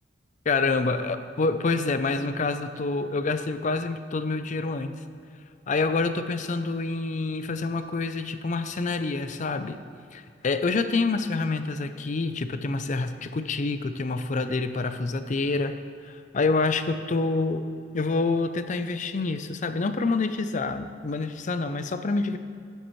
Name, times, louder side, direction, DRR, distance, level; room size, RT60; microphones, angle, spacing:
voice 1, 0.5-5.0 5.7-9.8 10.1-15.7 16.0-17.7 17.9-22.4, left 3 dB, 40° left, 10 dB, 0.5 m, -27 dB
12.5 x 9.1 x 3.1 m, 2.4 s
head